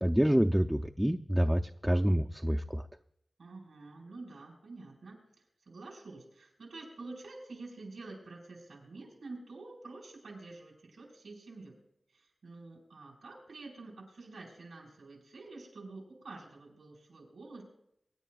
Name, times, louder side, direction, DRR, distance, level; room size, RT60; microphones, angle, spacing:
voice 1, 0.0-2.8, equal, 5° right, 3 dB, 0.5 m, -27 dB
voice 2, 3.4-11.8 12.1-17.6, right 3 dB, 90° right, -1 dB, 4.8 m, -48 dB
24.0 x 10.0 x 2.4 m, 0.76 s
cardioid pair, 45°, 0 cm